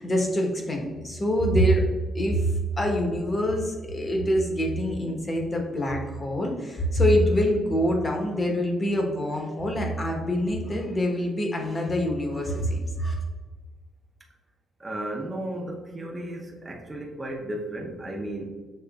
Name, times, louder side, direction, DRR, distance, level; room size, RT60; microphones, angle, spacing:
voice 1, 0.0-1.9 2.1-13.2, equal, 30° left, 1 dB, 1.0 m, -25 dB
voice 2, 14.8-18.4, right 1 dB, 20° right, -1 dB, 0.7 m, -34 dB
6.5 x 3.1 x 2.3 m, 1.4 s
cardioid pair, 90°, 0 cm